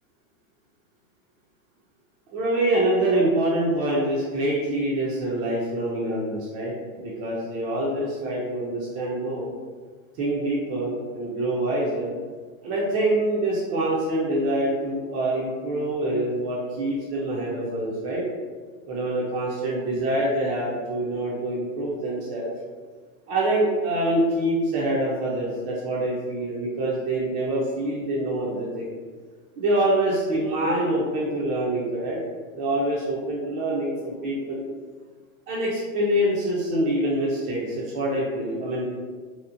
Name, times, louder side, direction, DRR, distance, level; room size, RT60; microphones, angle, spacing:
voice 1, 2.3-9.5 10.2-12.1 12.6-18.2 18.9-22.5 23.3-28.9 29.6-32.2 32.5-34.6 35.5-38.9, right 1 dB, 40° right, -6 dB, 0.5 m, -25 dB
2.8 x 2.1 x 2.4 m, 1.5 s
supercardioid pair, 125°, 43 cm